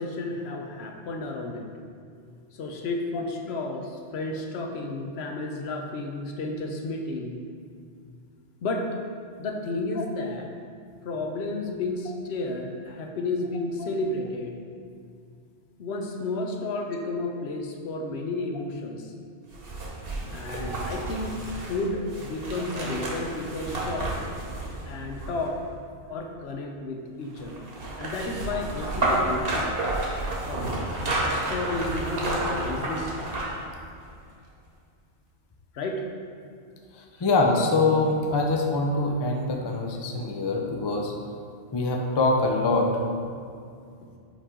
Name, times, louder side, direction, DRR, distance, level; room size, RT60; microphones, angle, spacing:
voice 1, 0.0-1.6 2.5-7.4 8.6-8.9 9.4-10.5 11.0-14.6 15.8-19.1 20.3-21.4 21.7-24.1 24.9-25.6 26.1-27.7 28.0-29.7 30.5-33.3 35.7-36.0 37.1-37.3, left 2 dB, 65° left, 2 dB, 0.9 m, -32 dB
sound 1, 19.5-25.7 27.4-33.7 34.0-34.1, right 1 dB, 55° right, 1.2 m, -30 dB
voice 2, 37.2-41.1 41.7-43.0, left 3 dB, 45° left, 1 dB, 0.3 m, -24 dB
5.4 x 4.9 x 3.7 m, 2.3 s
omnidirectional pair, 1.2 m